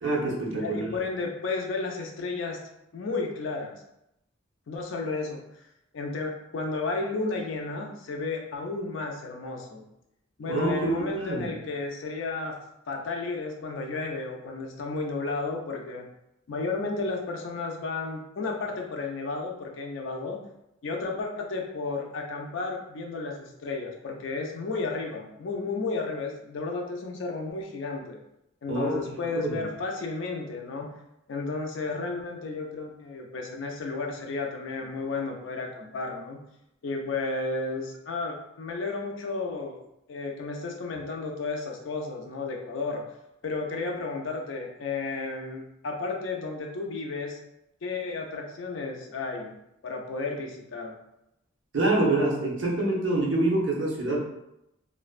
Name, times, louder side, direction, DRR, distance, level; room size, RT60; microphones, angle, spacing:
voice 1, 0.0-1.0 10.5-11.5 28.7-29.6 51.7-54.2, right 2 dB, 65° right, -2 dB, 0.7 m, -26 dB
voice 2, 0.5-2.6 2.9-3.7 4.7-5.4 5.9-9.8 10.4-12.6 12.9-16.1 16.5-20.4 20.8-28.2 28.6-30.9 31.3-36.4 36.8-39.8 40.1-43.0 43.4-47.4 47.8-49.5 49.8-50.9, left 3 dB, 70° left, 2 dB, 0.4 m, -33 dB
2.4 x 2.2 x 2.4 m, 0.83 s
head